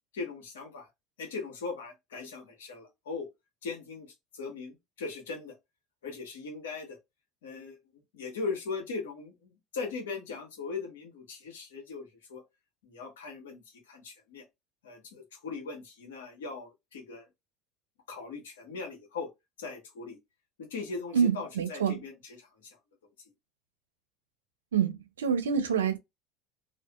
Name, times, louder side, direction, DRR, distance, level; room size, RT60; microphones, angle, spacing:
voice 1, 0.1-0.9 1.2-3.3 3.6-4.1 4.3-5.6 6.0-7.0 7.4-7.8 8.1-12.4 12.8-14.4 14.8-17.3 18.1-19.3 19.6-20.2 20.6-22.7, left 4 dB, 85° left, 1.1 m, -39 dB
voice 2, 21.1-22.0 24.7-26.0, right 7 dB, 90° right, 0.5 m, -27 dB
2.5 x 2.4 x 2.4 m
hypercardioid pair, 75°, 0 cm